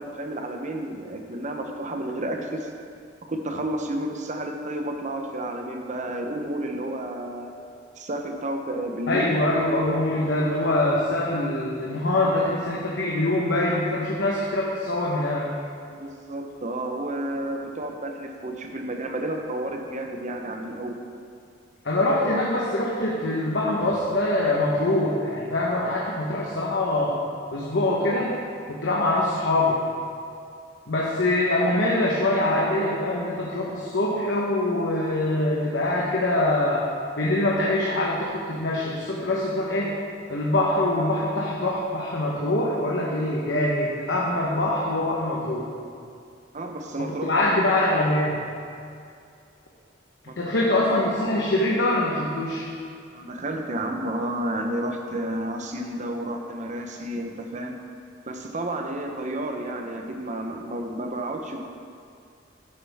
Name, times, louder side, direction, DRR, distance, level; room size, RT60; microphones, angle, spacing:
voice 1, 0.0-2.7 3.3-7.5 8.0-9.3 9.9-10.2 16.0-21.0 46.5-47.5 50.3-50.8 53.1-57.8 58.3-61.6, right 1 dB, 40° right, 3 dB, 0.8 m, -31 dB
voice 2, 9.1-15.5 21.8-27.1 27.5-28.4 28.7-29.8 30.9-39.9 40.3-45.7 47.2-48.4 50.4-52.7, left 1 dB, 80° left, -4 dB, 1.1 m, -24 dB
10.0 x 8.5 x 3.5 m, 2.4 s
head